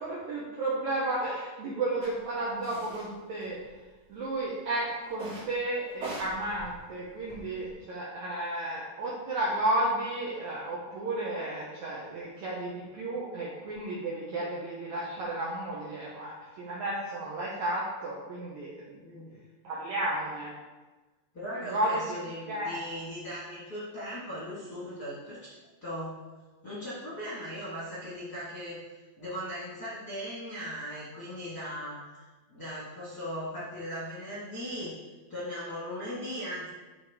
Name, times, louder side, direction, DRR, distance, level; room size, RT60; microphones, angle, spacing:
voice 1, 0.0-3.6 4.1-19.0 19.6-20.5 21.7-22.0 22.5-22.8, right 2 dB, 75° right, -5 dB, 1.8 m, -33 dB
sound 1, 2.0-2.1 2.6-3.1 3.4-4.1 5.1-5.5 5.9-7.7, right 2 dB, 40° right, 3.3 m, -42 dB
voice 2, 19.0-19.4 21.3-25.5 25.8-26.2 26.6-28.8 29.2-34.9 35.3-36.7, equal, 40° left, -9 dB, 1.4 m, -38 dB
9.6 x 4.1 x 3.5 m, 1.2 s
omnidirectional pair, 4.5 m